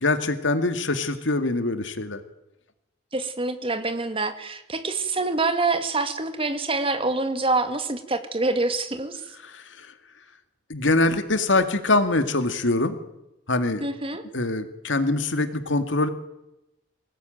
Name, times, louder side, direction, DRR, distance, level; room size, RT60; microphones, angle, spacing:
voice 1, 0.0-2.2 9.4-9.9 10.7-13.0 13.5-13.8 14.3-16.1, left 2 dB, 85° left, 9 dB, 2.1 m, -24 dB
voice 2, 3.1-9.2 13.8-14.2, right 3 dB, 30° right, 9 dB, 2.0 m, -26 dB
22.0 x 18.0 x 9.2 m, 0.92 s
head